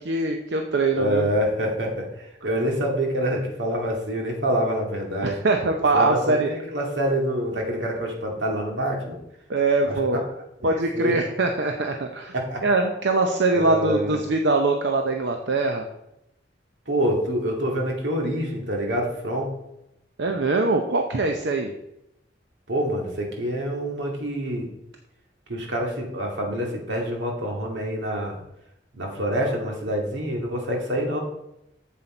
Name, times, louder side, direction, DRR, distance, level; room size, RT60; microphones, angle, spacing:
voice 1, 0.0-1.3 5.2-6.5 9.5-10.2 10.6-12.3 12.6-15.8 20.2-21.7, right 3 dB, 70° right, 4 dB, 0.7 m, -22 dB
voice 2, 1.0-5.4 5.9-9.2 9.9-10.0 10.3-10.4 10.7-11.2 12.3-12.6 13.5-14.2 16.9-19.5 22.7-24.7 25.5-28.4 28.9-31.2, equal, 90° right, 0 dB, 2.2 m, -26 dB
7.8 x 7.5 x 4.4 m, 0.85 s
head